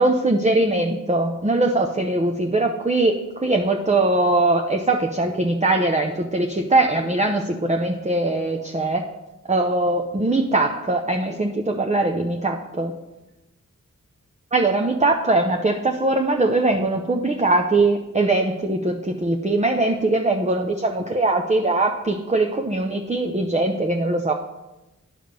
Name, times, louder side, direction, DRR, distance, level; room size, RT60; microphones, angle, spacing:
voice 1, 0.0-9.0 9.5-12.9 14.5-24.3, right 2 dB, 20° right, 3 dB, 0.7 m, -21 dB
10.5 x 5.0 x 5.2 m, 1.0 s
wide cardioid pair, 45°, 32 cm